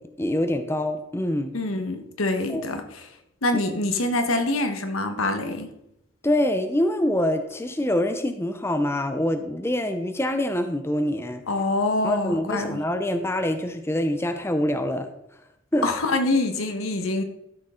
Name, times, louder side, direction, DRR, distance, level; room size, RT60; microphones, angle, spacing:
voice 1, 0.2-1.5 2.5-2.7 6.2-11.4 12.0-15.1 15.7-15.9, left 1 dB, 10° left, 8 dB, 0.6 m, -25 dB
voice 2, 1.5-3.1 3.4-5.7 11.5-12.8 15.8-17.2, left 2 dB, 85° left, 6 dB, 1.3 m, -25 dB
12.5 x 6.5 x 3.8 m, 0.80 s
head